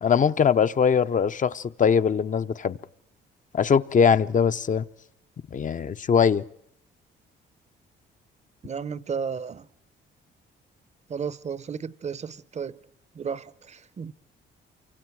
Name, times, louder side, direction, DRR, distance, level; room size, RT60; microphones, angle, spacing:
voice 1, 0.0-2.8 3.5-4.8 5.5-6.4, left 7 dB, 40° left, 0.8 m, -21 dB
voice 2, 8.6-9.7 11.1-12.8 13.1-14.1, right 6 dB, 35° right, 0.8 m, -33 dB
28.0 x 24.5 x 4.8 m
cardioid pair, 90°, 20 cm